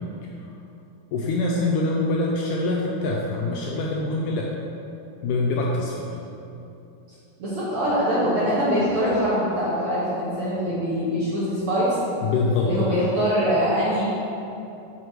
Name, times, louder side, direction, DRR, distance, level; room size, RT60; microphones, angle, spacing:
voice 1, 1.1-4.5 5.2-6.2 12.2-13.1, left 2 dB, 80° left, -2 dB, 1.9 m, -24 dB
voice 2, 7.4-12.0 12.6-14.0, equal, 50° right, -10 dB, 1.8 m, -23 dB
6.4 x 6.3 x 4.7 m, 2.8 s
omnidirectional pair, 4.1 m